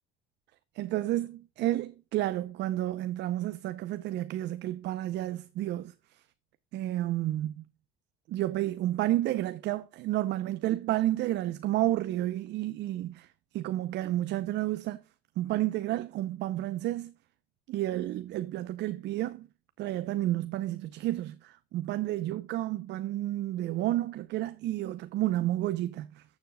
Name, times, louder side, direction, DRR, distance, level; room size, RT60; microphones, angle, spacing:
voice 1, 0.7-5.9 6.7-7.6 8.3-13.3 13.5-15.0 15.4-17.1 17.7-19.5 19.8-26.2, right 14 dB, 60° right, 0.6 m, -31 dB
14.0 x 7.2 x 2.2 m
supercardioid pair, 90°, 20 cm